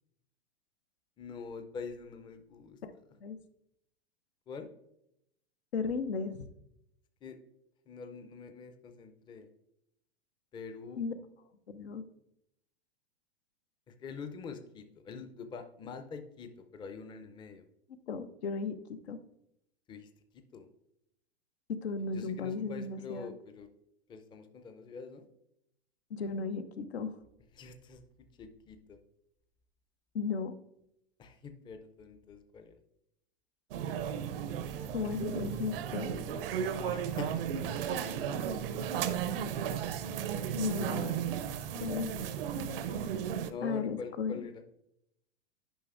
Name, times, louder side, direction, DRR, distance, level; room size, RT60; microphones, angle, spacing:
voice 1, 1.2-2.8 4.5-4.7 7.2-7.4 7.9-9.5 10.5-11.0 13.9-17.7 19.9-20.7 22.1-23.7 24.1-25.2 27.5-29.0 31.2-32.8 36.7-37.4 39.0-39.1 40.6-41.3 41.7-41.9 42.1-43.0 43.5-44.6, left 5 dB, 15° left, 8 dB, 0.5 m, -45 dB
voice 2, 5.7-6.5 11.0-11.1 11.7-12.0 17.9-19.2 21.7-23.3 26.1-27.2 30.1-30.5 34.9-36.2 40.6-41.2 41.8-42.1 43.6-44.3, left 5 dB, 80° left, 10 dB, 0.7 m, -35 dB
sound 1, 33.7-43.5, right 8 dB, 60° right, 0.6 m, -34 dB
10.0 x 5.2 x 2.5 m, 0.79 s
hypercardioid pair, 105°, 32 cm